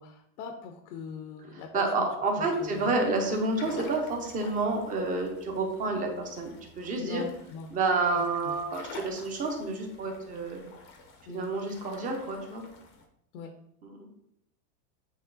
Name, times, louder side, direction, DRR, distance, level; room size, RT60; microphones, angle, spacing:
voice 1, 0.0-2.1 2.4-2.9 3.6-3.8 7.0-7.7 8.1-8.6 11.3-11.5 13.3-13.5, left 5 dB, 70° left, 6 dB, 0.8 m, -42 dB
voice 2, 1.7-7.2 7.7-10.6 11.3-12.6 13.8-14.1, right 3 dB, 20° right, 2 dB, 0.7 m, -29 dB
sound 1, 2.6-13.0, left 3 dB, 25° left, 0.6 m, -49 dB
8.2 x 3.1 x 3.9 m, 0.77 s
supercardioid pair, 160°, 46 cm